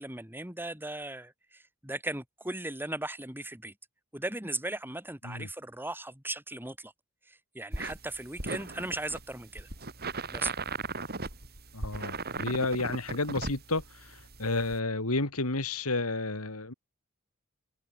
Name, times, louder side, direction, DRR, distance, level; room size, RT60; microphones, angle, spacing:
voice 1, 0.0-3.7 4.1-6.9 7.3-9.7 10.3-10.5, right 2 dB, 10° right, 6.2 m, -37 dB
sound 1, 7.7-14.8, right 3 dB, 45° right, 4.4 m, -37 dB
voice 2, 11.7-16.7, left 2 dB, 75° left, 3.3 m, -31 dB
head